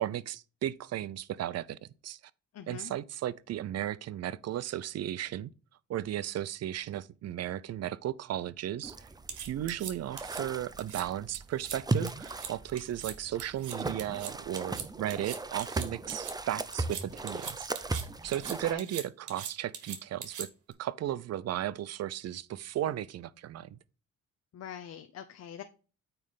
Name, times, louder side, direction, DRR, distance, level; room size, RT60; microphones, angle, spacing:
voice 1, 0.0-1.8 2.0-2.2 2.7-5.5 5.9-9.1 9.4-17.9 18.2-20.5 20.8-23.8, right 12 dB, 55° right, 0.5 m, -35 dB
voice 2, 2.5-2.9 18.6-18.9 24.5-25.6, left 9 dB, 55° left, 0.8 m, -44 dB
sound 1, 8.8-18.7, right 2 dB, 15° right, 0.6 m, -37 dB
sound 2, 9.3-10.4 10.8-11.0 11.3-11.8 12.1-12.5 12.8-13.1 13.4-16.3 16.7-18.0 18.3-20.7, right 8 dB, 75° right, 1.6 m, -41 dB
8.8 x 3.3 x 5.6 m
cardioid pair, 90°, 30 cm